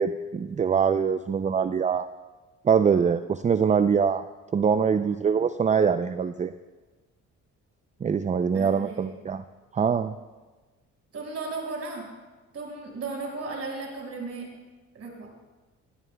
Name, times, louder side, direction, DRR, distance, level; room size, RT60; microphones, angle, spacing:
voice 1, 0.0-2.1 2.6-4.2 4.5-6.5 8.0-9.4 9.7-10.1, right 6 dB, 25° right, 10 dB, 0.4 m, -23 dB
voice 2, 8.5-9.2 11.1-12.0 12.5-14.5 14.9-15.3, right 3 dB, 55° right, 0 dB, 5.1 m, -35 dB
20.0 x 16.0 x 2.2 m, 1.2 s
cardioid pair, 90°, 30 cm